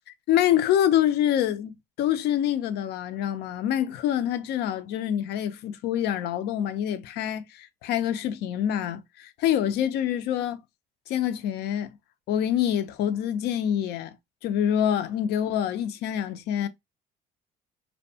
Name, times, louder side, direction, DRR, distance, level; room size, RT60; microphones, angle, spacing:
voice 1, 0.3-1.7 2.0-10.6 11.1-11.9 12.3-14.2 14.4-16.7, left 10 dB, 75° left, 0.4 m, -26 dB
2.6 x 2.2 x 2.6 m
cardioid pair, 110°, 17 cm